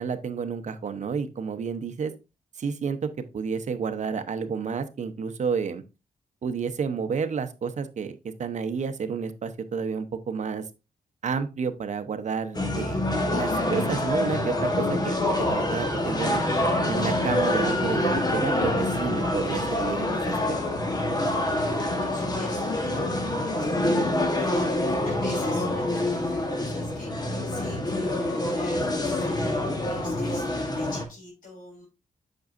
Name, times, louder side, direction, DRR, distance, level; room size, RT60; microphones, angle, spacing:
voice 1, 0.0-2.1 2.6-5.8 6.4-10.6 11.2-13.0 13.3-15.2 15.5-16.4 16.9-20.6, right 6 dB, 55° right, 9 dB, 0.8 m, -30 dB
sound 1, 12.5-31.0, left 1 dB, 30° left, 1.2 m, -26 dB
voice 2, 21.5-24.0 24.4-31.9, left 2 dB, 75° left, -3 dB, 3.8 m, -46 dB
7.8 x 6.0 x 2.5 m, 0.28 s
wide cardioid pair, 120°, 15 cm